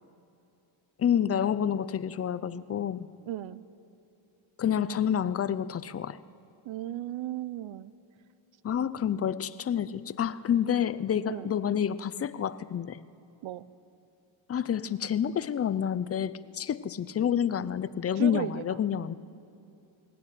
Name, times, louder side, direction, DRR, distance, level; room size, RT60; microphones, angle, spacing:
voice 1, 1.0-3.1 4.6-6.2 8.6-13.0 14.5-19.2, left 9 dB, 30° left, 16 dB, 0.5 m, -28 dB
voice 2, 3.3-3.6 6.6-7.9 11.3-11.5 13.4-13.7 18.2-18.6, right 13 dB, 70° right, 16 dB, 0.8 m, -35 dB
21.0 x 19.0 x 10.0 m, 2.7 s
wide cardioid pair, 170°, 49 cm